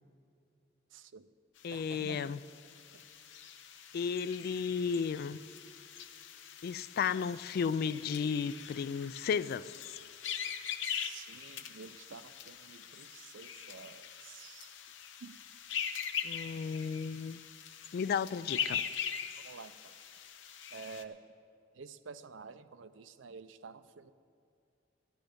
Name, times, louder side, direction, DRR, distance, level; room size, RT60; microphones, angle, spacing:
voice 1, 0.9-1.3 1.7-2.3 2.9-3.1 10.8-14.8 15.2-15.3 19.4-19.9 20.7-21.2 21.7-24.1, right 5 dB, 80° right, 13 dB, 0.5 m, -50 dB
sound 1, 1.6-21.0, left 8 dB, 70° left, 0.7 m, -42 dB
voice 2, 1.6-2.4 3.9-5.4 6.6-9.7 16.2-17.4 17.9-18.8, left 6 dB, 55° left, 18 dB, 0.3 m, -33 dB
14.0 x 11.5 x 5.2 m, 2.5 s
head